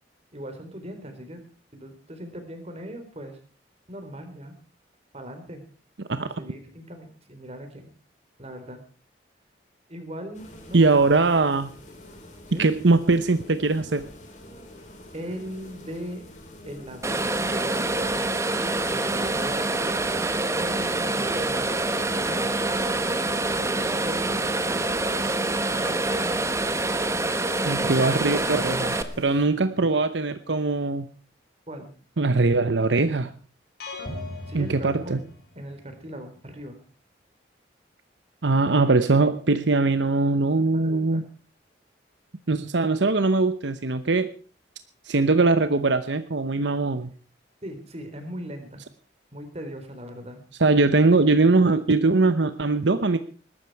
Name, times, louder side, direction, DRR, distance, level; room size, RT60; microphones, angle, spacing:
voice 1, 0.3-1.4 1.7-3.4 3.9-4.5 5.1-5.6 6.2-7.9 8.4-8.8 9.9-11.0 12.5-12.7 15.1-16.2 16.7-18.1 18.9-19.7 20.5-21.6 22.2-22.5 23.5-24.3 25.6-26.0 31.7-31.9 34.5-35.2 35.6-36.8 40.8-41.2 47.6-48.8 49.3-50.4, equal, 35° right, 6 dB, 3.8 m, -39 dB
sound 1, 10.3-29.4, left 1 dB, 40° left, 4.0 m, -46 dB
voice 2, 10.7-11.7 12.6-14.0 27.6-31.1 32.2-33.3 34.5-35.2 38.4-41.2 42.5-44.3 45.1-47.1 50.6-53.2, right 3 dB, 75° right, 11 dB, 0.9 m, -21 dB
sound 2, 17.0-29.0, right 2 dB, 15° right, 1.1 m, -26 dB
sound 3, 33.8-35.8, left 2 dB, 55° left, 5.1 m, -37 dB
20.5 x 13.0 x 4.7 m, 0.40 s
head